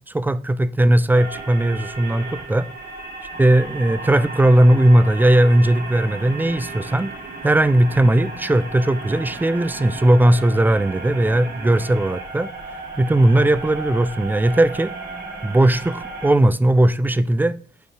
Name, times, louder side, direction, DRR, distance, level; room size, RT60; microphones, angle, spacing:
voice 1, 0.1-2.7 3.4-7.1 7.4-12.5 13.0-14.9 15.4-17.6, right 1 dB, 10° right, 0.3 m, -17 dB
sound 1, 1.1-16.3, right 3 dB, 55° right, 2.4 m, -34 dB
8.1 x 2.7 x 4.6 m
cardioid pair, 90°, 20 cm